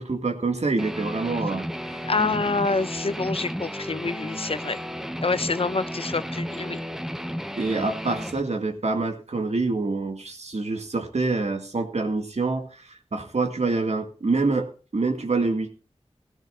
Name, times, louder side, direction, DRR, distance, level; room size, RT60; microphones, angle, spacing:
voice 1, 0.0-2.0 7.6-15.7, right 3 dB, 80° right, 5 dB, 2.1 m, -26 dB
Guitar, 0.8-8.4, equal, 5° right, 1.0 m, -33 dB
voice 2, 2.0-4.8 5.2-6.8, left 4 dB, 60° left, 13 dB, 0.8 m, -26 dB
16.5 x 16.5 x 2.5 m, 0.35 s
wide cardioid pair, 65°, 11 cm